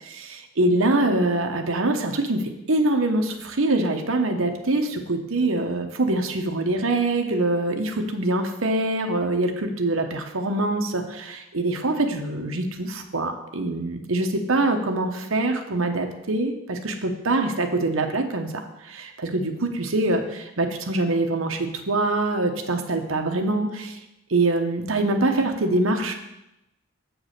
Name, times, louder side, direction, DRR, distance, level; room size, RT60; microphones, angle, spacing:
voice 1, 0.0-2.4 2.7-24.0 24.3-26.1, right 2 dB, 75° right, 4 dB, 1.0 m, -24 dB
8.0 x 4.7 x 6.6 m, 0.91 s
head